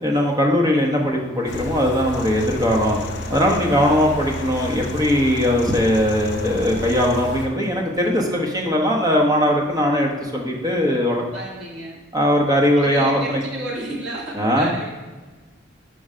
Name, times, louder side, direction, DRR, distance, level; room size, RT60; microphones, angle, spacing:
voice 1, 0.0-3.0 3.3-11.2 12.1-13.4 14.4-14.7, equal, 20° right, 0 dB, 1.0 m, -20 dB
sound 1, 1.5-7.5, left 1 dB, 60° left, 0.8 m, -31 dB
voice 2, 3.6-4.0 11.3-12.0 12.8-14.9, right 2 dB, 65° right, -4 dB, 1.7 m, -31 dB
5.0 x 4.7 x 5.5 m, 1.3 s
head